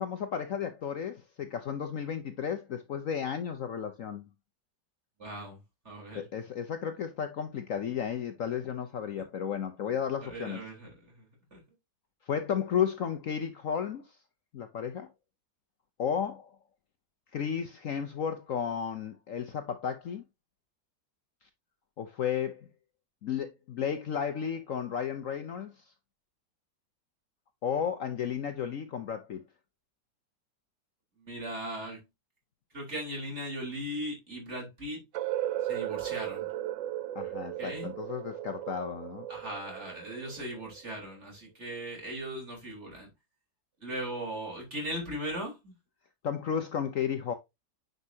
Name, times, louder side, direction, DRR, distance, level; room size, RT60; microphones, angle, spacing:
voice 1, 0.0-4.3 6.1-10.6 12.3-14.0 14.5-15.1 16.0-16.5 17.3-20.2 22.0-22.7 23.2-25.7 27.6-29.4 37.1-39.3 46.2-47.3, left 8 dB, 60° left, 1.0 m, -33 dB
voice 2, 5.2-6.2 10.2-11.6 31.2-32.0 32.7-35.0 35.6-36.5 37.6-37.9 39.3-43.1 43.8-45.7, right 1 dB, 40° right, 4.2 m, -38 dB
sound 1, 35.1-41.0, right 13 dB, 85° right, 0.6 m, -36 dB
9.7 x 5.5 x 2.8 m
omnidirectional pair, 1.9 m